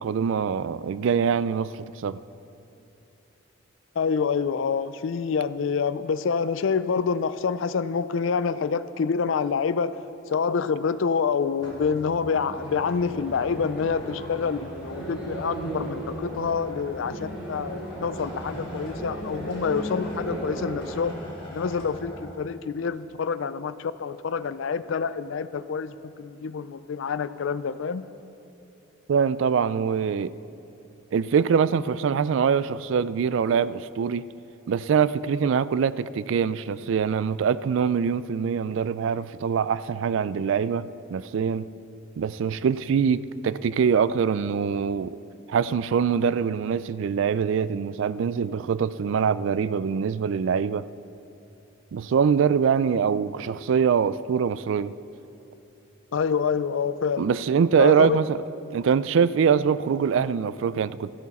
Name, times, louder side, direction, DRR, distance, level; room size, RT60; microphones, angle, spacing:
voice 1, 0.0-2.2 29.1-30.3 31.1-34.3 34.7-41.7 42.2-45.2 45.5-50.9 51.9-54.9 57.2-58.4 58.7-61.1, right 6 dB, 70° right, 0.3 m, -23 dB
voice 2, 4.0-10.0 10.3-21.1 21.5-28.1 56.1-57.3 57.8-58.2, left 5 dB, 70° left, 0.4 m, -27 dB
sound 1, 11.6-22.3, equal, 25° left, 2.1 m, -42 dB
sound 2, 12.5-21.0, right 1 dB, 5° right, 3.3 m, -36 dB
13.0 x 11.0 x 4.2 m
head